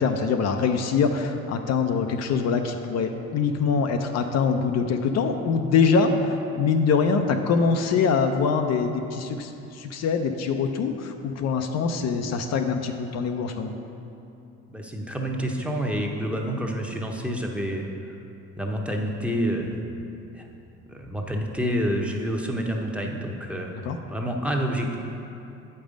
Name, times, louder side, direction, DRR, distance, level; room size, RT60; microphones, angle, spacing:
voice 1, 0.0-13.7 23.7-24.0, left 5 dB, 60° left, 5 dB, 0.6 m, -24 dB
voice 2, 14.7-18.2 18.6-19.9 20.3-20.5 20.9-23.7 24.1-25.0, equal, 5° right, 0 dB, 0.9 m, -28 dB
7.7 x 5.4 x 5.1 m, 2.8 s
cardioid pair, 90°, 29 cm